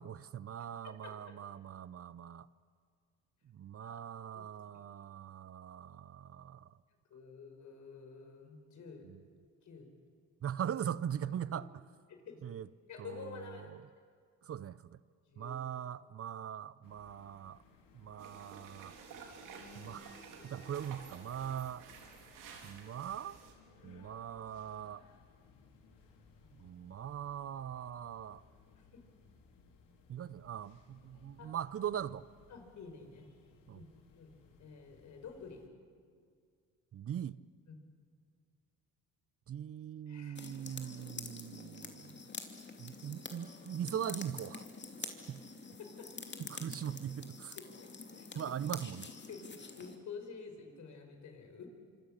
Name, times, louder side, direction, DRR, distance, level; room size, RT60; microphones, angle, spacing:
voice 1, 0.0-2.5 3.4-6.8 9.0-9.2 10.4-11.7 12.4-12.7 13.0-13.9 14.4-15.0 15.4-17.6 17.9-18.9 19.7-21.8 22.6-23.4 23.8-25.0 26.6-28.4 30.1-32.2 33.7-33.9 36.9-37.4 39.5-42.3 42.8-44.7 45.0-45.4 46.5-47.6 48.3-49.1, right 9 dB, 45° right, 18 dB, 0.7 m, -41 dB
voice 2, 7.1-9.1 9.7-9.9 12.1-12.4 12.9-13.7 15.3-15.6 19.5-20.0 20.4-20.5 23.8-24.2 25.5-25.6 26.4-26.5 28.9-29.0 31.4-31.5 32.5-33.3 33.7-33.8 34.1-34.3 34.6-35.6 37.7-37.8 40.1-40.5 45.8-46.1 48.2-48.4 49.3-51.6, left 5 dB, 60° left, 5 dB, 5.1 m, -50 dB
sound 1, 16.8-35.7, left 4 dB, 80° left, 3.2 m, -64 dB
sound 2, 18.2-23.5, right 5 dB, 75° right, 3.8 m, -52 dB
sound 3, 40.3-50.0, left 4 dB, 35° left, 2.8 m, -47 dB
26.0 x 25.0 x 6.6 m, 2.1 s
supercardioid pair, 75°, 33 cm